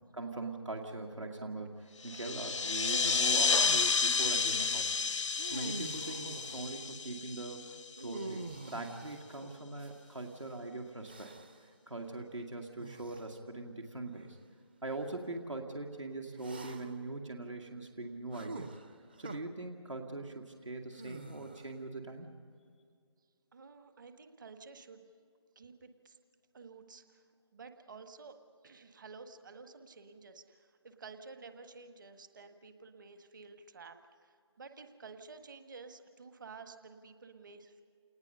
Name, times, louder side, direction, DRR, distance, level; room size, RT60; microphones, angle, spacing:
voice 1, 0.1-5.0 5.5-11.3 11.6-14.4 14.8-18.7 19.2-22.3, right 2 dB, 80° right, 2 dB, 2.4 m, -41 dB
sound 1, 2.0-8.2, left 5 dB, 80° left, 0.5 m, -31 dB
sound 2, 3.6-4.1 5.3-6.8 8.0-10.3 11.1-11.7 12.8-13.3 14.1-14.3 16.4-17.1 18.3-19.4 20.9-21.8, right 2 dB, 20° right, 0.5 m, -46 dB
voice 2, 23.5-25.1 25.5-26.2 26.5-27.2 27.5-28.4 28.6-37.8, right 4 dB, 40° right, 8 dB, 1.5 m, -52 dB
28.5 x 19.5 x 5.6 m, 2.2 s
figure-of-eight pair, 155°, 15 cm